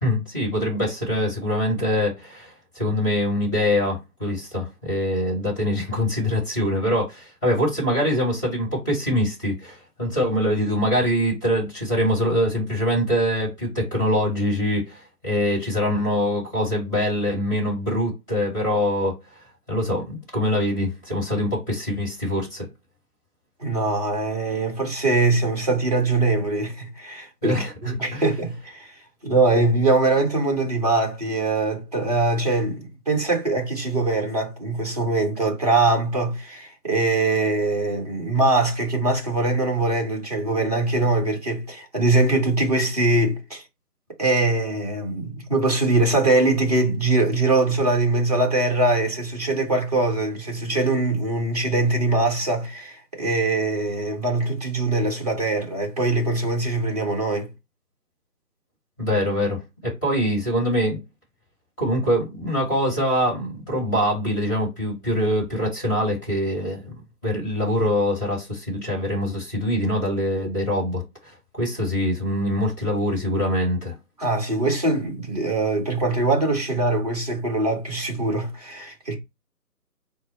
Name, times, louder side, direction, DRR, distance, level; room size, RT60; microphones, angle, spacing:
voice 1, 0.0-19.2 19.7-22.7 27.4-27.7 28.1-28.2 59.0-61.0 61.8-74.0, equal, 10° left, 1.5 m, -24 dB
voice 2, 23.6-28.9 29.2-43.6 44.2-57.5 74.2-79.2, right 2 dB, 25° right, 0.7 m, -22 dB
4.2 x 2.0 x 4.0 m
figure-of-eight pair, 155°, 47 cm